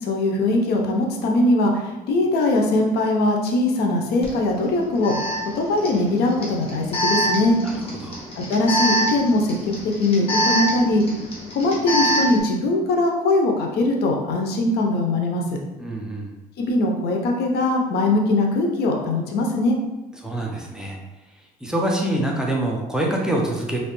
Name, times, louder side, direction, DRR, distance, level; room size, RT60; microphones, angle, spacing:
voice 1, 0.0-5.1 5.6-7.6 8.4-9.5 9.8-11.0 11.5-15.4 16.6-19.8, left 2 dB, 70° left, 1 dB, 0.6 m, -21 dB
Alarm, 4.2-4.3 5.0-12.4, equal, 35° left, 1.2 m, -25 dB
voice 2, 15.8-16.3 20.2-21.0 21.6-23.8, right 1 dB, 5° right, -1 dB, 0.6 m, -25 dB
3.2 x 2.8 x 3.0 m, 1.1 s
cardioid pair, 110°, 17 cm